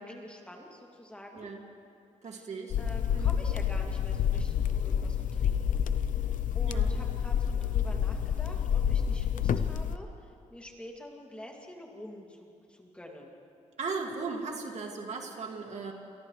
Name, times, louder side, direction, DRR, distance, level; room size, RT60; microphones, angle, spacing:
voice 1, 0.0-1.5 2.3-2.5 2.8-5.8 6.5-10.1 10.5-13.3, left 1 dB, 10° left, -1 dB, 2.6 m, -47 dB
voice 2, 2.2-2.8 3.1-3.3 6.7-6.9 13.8-15.9, right 4 dB, 60° right, 1 dB, 2.3 m, -37 dB
sound 1, 2.7-10.0, left 8 dB, 90° left, 0.7 m, -28 dB
28.5 x 28.5 x 3.3 m, 2.6 s
wide cardioid pair, 145°, 13 cm